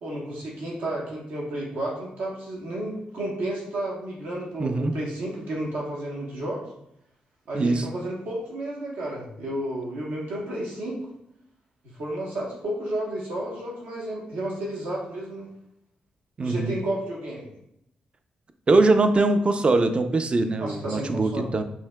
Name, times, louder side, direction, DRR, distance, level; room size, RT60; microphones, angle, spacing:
voice 1, 0.0-6.6 7.5-11.0 11.8-15.5 16.4-17.5 20.6-21.5, right 1 dB, 80° right, -3 dB, 1.0 m, -32 dB
voice 2, 4.6-4.9 7.5-7.9 16.4-16.7 18.7-21.6, right 2 dB, 35° right, 8 dB, 0.4 m, -22 dB
5.5 x 2.8 x 2.2 m, 0.77 s
supercardioid pair, 60°, 3 cm